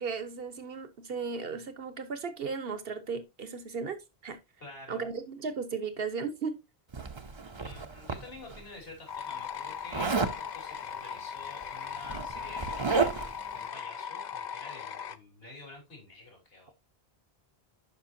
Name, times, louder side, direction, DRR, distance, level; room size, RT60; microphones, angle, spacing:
voice 1, 0.0-4.4 4.9-6.6, right 5 dB, 70° right, 1.3 m, -36 dB
voice 2, 4.6-5.1 7.6-16.7, left 2 dB, 70° left, 3.3 m, -49 dB
Zipper (clothing), 6.9-8.6 9.9-10.4 11.5-11.6 11.9-13.4, right 4 dB, 30° right, 0.7 m, -31 dB
sound 1, 9.1-15.2, left 7 dB, 50° left, 0.7 m, -39 dB
11.0 x 5.4 x 2.7 m
omnidirectional pair, 1.0 m